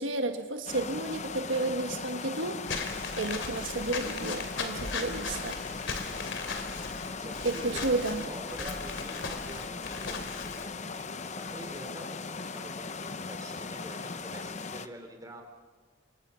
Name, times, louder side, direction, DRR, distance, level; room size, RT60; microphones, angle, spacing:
voice 1, 0.0-2.6 3.2-5.6 7.4-8.2, right 2 dB, 80° right, 6 dB, 1.4 m, -32 dB
sound 1, 0.6-11.6, equal, 60° left, 7.7 m, -61 dB
sound 2, 0.7-14.9, left 4 dB, 35° left, 0.8 m, -39 dB
Walk footsteps / Squeak, 2.7-10.6, left 4 dB, 80° left, 3.1 m, -38 dB
voice 2, 5.5-15.4, right 1 dB, 20° right, 4 dB, 3.6 m, -47 dB
30.0 x 26.0 x 5.7 m, 1.4 s
head